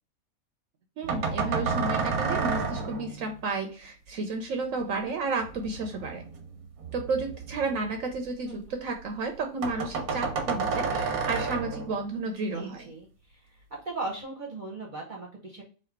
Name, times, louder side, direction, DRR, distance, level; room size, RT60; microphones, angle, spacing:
voice 1, 1.0-6.2 6.9-12.9, right 3 dB, 70° right, 4 dB, 1.0 m, -32 dB
sound 1, 1.0-3.4 5.4-8.7 9.0-9.1 9.3-9.4 9.6-12.1, right 4 dB, 85° right, 1.3 m, -31 dB
voice 2, 12.5-13.1 13.3-13.4 13.7-15.6, right 2 dB, 40° right, -2 dB, 0.9 m, -37 dB
4.0 x 2.7 x 4.4 m, 0.37 s
omnidirectional pair, 1.5 m